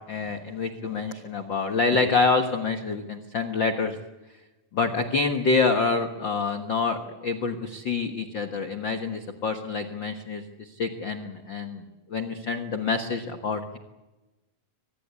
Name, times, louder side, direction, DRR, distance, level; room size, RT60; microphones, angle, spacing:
voice 1, 0.1-4.0 4.7-11.8 12.1-13.8, left 4 dB, 50° left, 6 dB, 1.4 m, -27 dB
25.0 x 20.0 x 8.4 m, 1.1 s
omnidirectional pair, 4.1 m